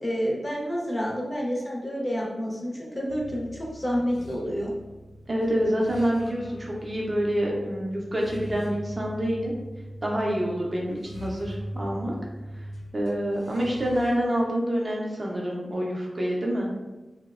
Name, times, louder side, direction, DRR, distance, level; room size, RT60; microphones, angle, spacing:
voice 1, 0.0-4.7, equal, 25° left, -3 dB, 0.5 m, -29 dB
sound 1, 3.1-14.1, equal, 70° left, 0.6 m, -41 dB
voice 2, 5.3-9.5 10.0-12.1 12.5-12.6 12.9-16.7, equal, 30° right, -3 dB, 0.4 m, -27 dB
2.7 x 2.0 x 2.3 m, 1.1 s
wide cardioid pair, 120°, 0 cm